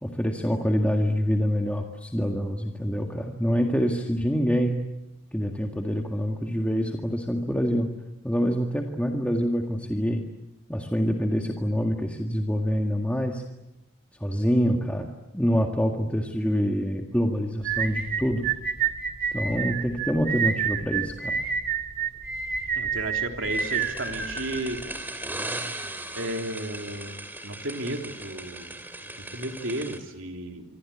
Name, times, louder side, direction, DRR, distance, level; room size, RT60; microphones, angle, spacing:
voice 1, 0.0-4.8 5.3-7.9 8.2-10.2 10.7-13.4 14.2-18.5 19.3-21.4, equal, 5° left, 2 dB, 1.9 m, -26 dB
sound 1, 17.6-25.0, right 7 dB, 45° right, 2.6 m, -29 dB
voice 2, 22.7-24.8 26.1-28.8 29.2-30.6, right 1 dB, 60° right, 4 dB, 3.5 m, -33 dB
sound 2, 23.5-30.0, right 2 dB, 10° right, 2.9 m, -38 dB
26.0 x 25.5 x 8.7 m, 0.91 s
head